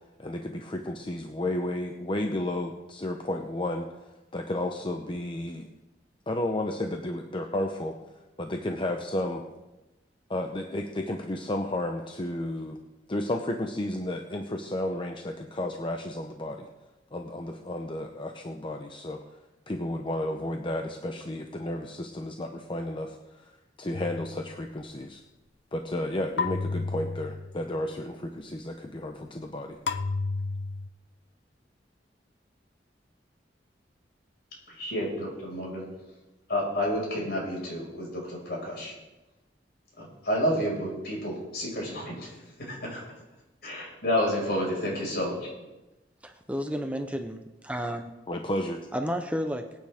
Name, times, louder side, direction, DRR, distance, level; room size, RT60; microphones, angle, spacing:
voice 1, 0.2-3.9 4.3-5.7 6.3-8.0 8.4-9.4 10.3-12.8 13.1-16.7 17.1-19.2 19.7-23.5 23.8-25.2 25.7-29.8 48.3-48.9, left 1 dB, 30° left, 4 dB, 0.8 m, -32 dB
sound 1, 23.9-24.6 26.4-27.7 29.9-30.9, left 4 dB, 90° left, 0.8 m, -32 dB
voice 2, 34.7-35.9 36.5-38.9 40.0-43.0 43.6-45.5, equal, 65° left, -2 dB, 5.6 m, -30 dB
voice 3, 46.2-48.1 48.9-49.7, equal, 10° right, 6 dB, 0.7 m, -32 dB
22.5 x 9.2 x 3.6 m, 1.0 s
head